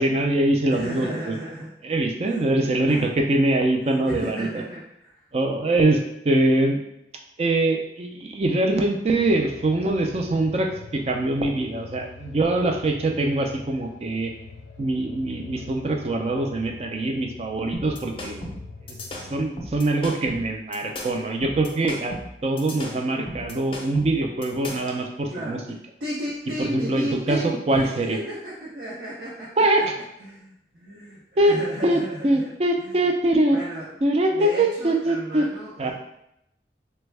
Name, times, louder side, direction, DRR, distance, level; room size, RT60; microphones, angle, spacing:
voice 1, 0.0-1.3 1.8-4.5 5.3-6.8 7.4-14.3 14.8-18.6 19.2-22.2 22.4-25.6 26.6-27.4 27.7-28.2 29.6-29.9 31.4-33.6 34.0-35.4 35.8-35.9, right 2 dB, 35° right, 3 dB, 0.4 m, -23 dB
voice 2, 0.7-1.7 2.2-2.5 2.8-3.1 3.9-5.1 25.3-25.6 26.0-29.6 30.2-32.5 32.8-33.0 33.5-33.9 34.3-35.9, right 1 dB, 70° right, -8 dB, 0.8 m, -34 dB
sound 1, 9.1-19.5, left 4 dB, 85° left, 0.5 m, -44 dB
sound 2, 17.7-25.0, left 1 dB, 30° left, 0.5 m, -36 dB
3.4 x 2.2 x 3.2 m, 0.81 s
head